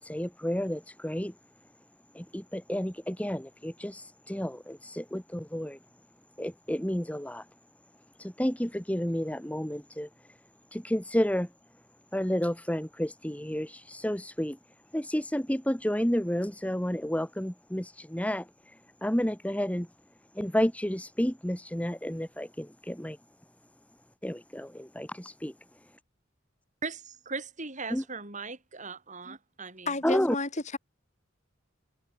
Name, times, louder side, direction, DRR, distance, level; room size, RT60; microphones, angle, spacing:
voice 1, 0.0-1.3 2.1-5.8 6.4-7.5 8.2-10.1 10.7-11.5 12.1-14.6 14.9-19.9 20.3-23.2 24.2-25.5 27.9-28.0 30.0-30.4, equal, 5° left, 1.8 m, -31 dB
voice 2, 26.8-29.9, right 4 dB, 40° right, 6.9 m, -39 dB
voice 3, 29.9-30.8, left 3 dB, 40° left, 6.6 m, -32 dB
head